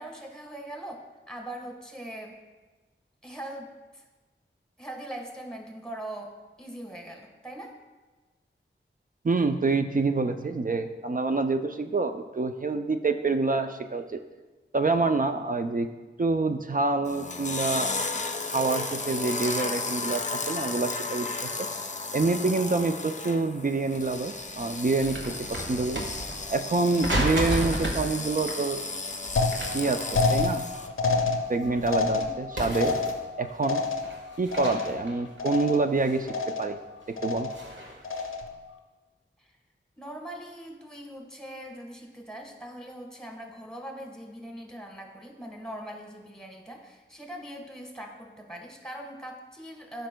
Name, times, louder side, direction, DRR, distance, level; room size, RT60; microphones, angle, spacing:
voice 1, 0.0-2.4 3.2-4.0 4.8-6.3 6.6-7.7 32.1-32.3 39.4-39.5 40.0-50.1, right 1 dB, 5° left, 2 dB, 1.4 m, -41 dB
voice 2, 9.2-14.2 14.7-15.9 16.2-17.9 18.5-21.7 22.1-26.1 26.5-28.8 29.7-30.7 31.5-33.0 33.4-33.9 34.4-36.3 36.6-36.8 37.2-37.5, right 3 dB, 45° right, 7 dB, 0.4 m, -27 dB
sound 1, 17.1-30.9, left 3 dB, 35° left, 0.5 m, -34 dB
sound 2, 24.8-26.6 27.0-28.1 28.4-28.6 29.3-30.8 31.0-32.3 32.6-33.4 33.8-36.4 36.9-38.3, equal, 65° right, 1.4 m, -34 dB
sound 3, 29.4-35.1 35.4-36.0 36.3-36.8 37.2-37.7 38.0-38.6, left 4 dB, 90° left, 0.6 m, -29 dB
12.0 x 5.2 x 2.2 m, 1.2 s
wide cardioid pair, 50°, 20 cm